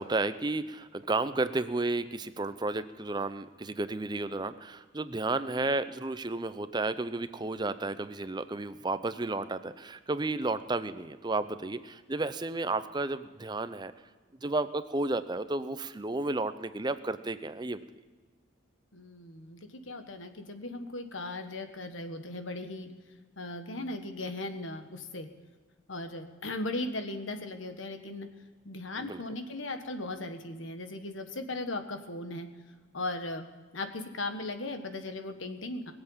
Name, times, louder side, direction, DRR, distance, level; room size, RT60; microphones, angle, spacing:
voice 1, 0.0-13.9 14.4-17.8 28.9-29.2, right 2 dB, 20° right, 12 dB, 0.5 m, -32 dB
voice 2, 18.9-19.6 19.9-22.9 23.4-25.3 25.9-28.3 28.6-32.5 32.9-33.4 33.7-35.9, left 2 dB, 75° left, 7 dB, 1.5 m, -37 dB
21.5 x 7.9 x 7.2 m, 1.4 s
head